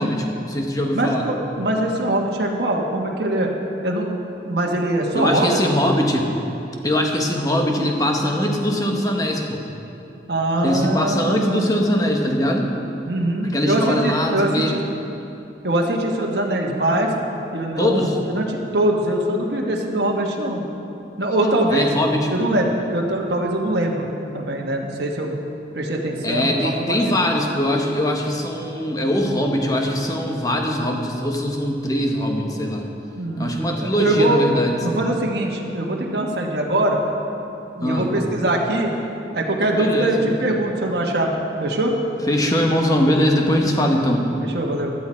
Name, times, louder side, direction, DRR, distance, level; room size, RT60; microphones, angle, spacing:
voice 1, 0.0-1.3 5.1-6.3 6.8-9.6 10.6-12.7 13.4-14.8 17.8-18.2 21.4-22.5 26.2-32.9 33.4-34.7 37.8-38.1 39.7-40.3 42.3-44.3, left 1 dB, 20° left, 1 dB, 1.2 m, -21 dB
voice 2, 0.9-3.5 3.8-4.2 4.4-5.6 10.3-11.8 13.1-14.8 15.6-17.1 17.5-20.6 21.2-21.8 22.3-24.1 24.3-25.4 25.7-27.2 33.2-34.4 34.8-37.0 37.8-38.9 39.3-41.3 41.6-41.9 44.4-44.9, right 1 dB, 65° right, -1 dB, 1.4 m, -22 dB
14.5 x 12.5 x 4.4 m, 2.8 s
head